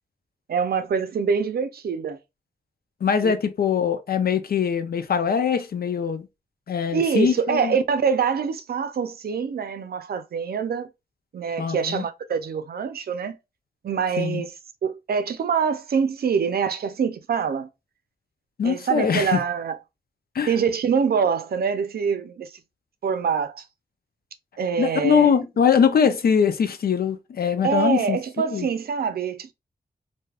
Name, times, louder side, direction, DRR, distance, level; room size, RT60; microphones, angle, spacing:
voice 1, 0.5-2.2 3.2-3.3 6.9-10.9 11.3-13.4 13.8-14.5 14.8-17.7 18.6-19.8 20.5-22.5 23.0-23.6 24.6-25.4 27.6-29.5, right 6 dB, 75° right, 0.5 m, -25 dB
voice 2, 3.0-6.3 6.7-7.8 11.6-12.0 14.2-14.4 18.6-19.4 20.3-20.5 24.8-28.7, left 7 dB, 75° left, 0.5 m, -22 dB
3.3 x 2.7 x 2.3 m
wide cardioid pair, 90°, 16 cm